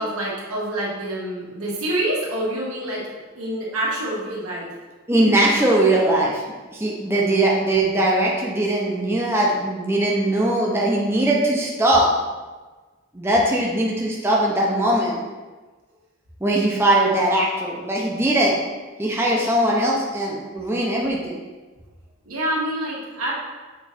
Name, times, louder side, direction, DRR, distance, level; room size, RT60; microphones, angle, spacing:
voice 1, 0.0-3.0 3.4-4.7 22.3-23.3, right 1 dB, 90° right, -5 dB, 1.8 m, -26 dB
voice 2, 5.1-6.4 6.7-12.1 13.1-15.2 16.4-18.5 19.0-21.4, right 1 dB, 10° right, -3 dB, 0.7 m, -20 dB
7.1 x 3.2 x 4.2 m, 1.3 s
head